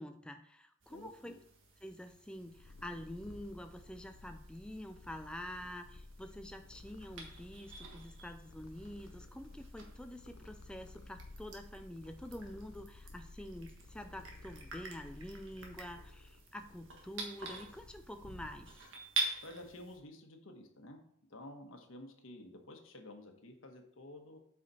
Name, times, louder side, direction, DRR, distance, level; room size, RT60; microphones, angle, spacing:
voice 1, 0.0-1.3 1.8-18.8, left 1 dB, 5° left, 7 dB, 0.3 m, -47 dB
sound 1, 0.8-20.0, right 3 dB, 65° right, 1.4 m, -47 dB
voice 2, 0.9-1.3 19.4-21.0 21.3-24.4, left 1 dB, 70° left, 4 dB, 1.3 m, -51 dB
Purr, 2.2-19.0, left 2 dB, 90° left, 0.7 m, -54 dB
8.2 x 4.9 x 4.2 m, 0.67 s
head